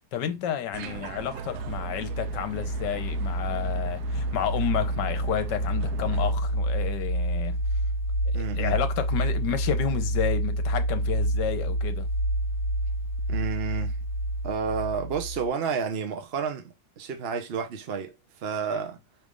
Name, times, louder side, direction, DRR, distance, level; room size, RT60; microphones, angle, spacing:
voice 1, 0.1-7.6 8.3-12.1 18.7-18.8, left 9 dB, 75° left, 1.4 m, -31 dB
sound 1, 0.7-6.3, right 9 dB, 70° right, 1.0 m, -40 dB
sound 2, 1.4-15.5, right 1 dB, 50° left, 1.5 m, -28 dB
voice 2, 8.3-8.7 13.3-14.0 14.4-16.6 17.0-19.0, right 6 dB, 55° right, 0.7 m, -30 dB
5.0 x 3.4 x 2.4 m
omnidirectional pair, 1.9 m